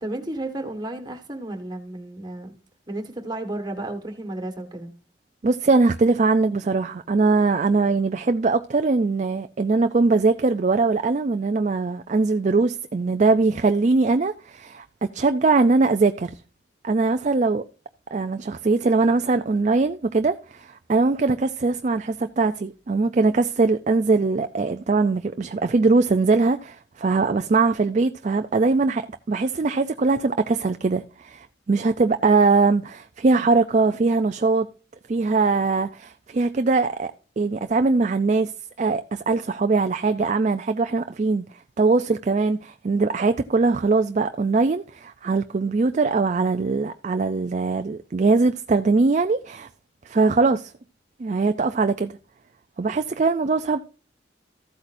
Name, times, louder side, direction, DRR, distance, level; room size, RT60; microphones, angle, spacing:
voice 1, 0.0-2.5 2.9-4.9, right 2 dB, 20° right, 1.6 m, -32 dB
voice 2, 5.4-16.4 16.8-17.6 18.1-34.7 35.1-38.5 38.8-41.4 41.8-49.7 50.1-50.7 51.2-52.2 52.8-53.8, right 3 dB, 40° right, 0.4 m, -21 dB
14.5 x 8.2 x 2.6 m
head